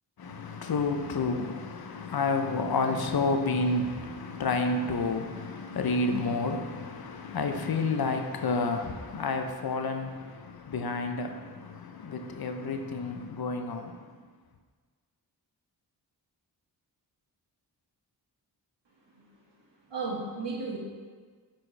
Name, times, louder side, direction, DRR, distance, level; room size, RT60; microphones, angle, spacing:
voice 1, 0.2-14.1, left 3 dB, 55° left, 0.7 m, -30 dB
voice 2, 19.8-20.8, right 3 dB, 70° right, 1.9 m, -35 dB
8.5 x 4.5 x 3.3 m
cardioid pair, 50°, 44 cm